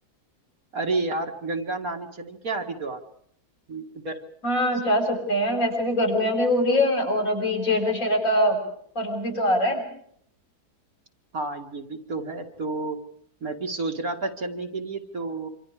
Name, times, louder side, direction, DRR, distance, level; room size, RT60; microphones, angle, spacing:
voice 1, 0.7-3.0 3.7-4.2 11.3-13.0 13.4-15.5, right 3 dB, 60° right, 3 dB, 2.5 m, -30 dB
voice 2, 4.4-8.6 9.0-9.8, left 1 dB, 55° left, 1 dB, 7.4 m, -23 dB
27.0 x 26.5 x 5.0 m, 0.65 s
omnidirectional pair, 1.7 m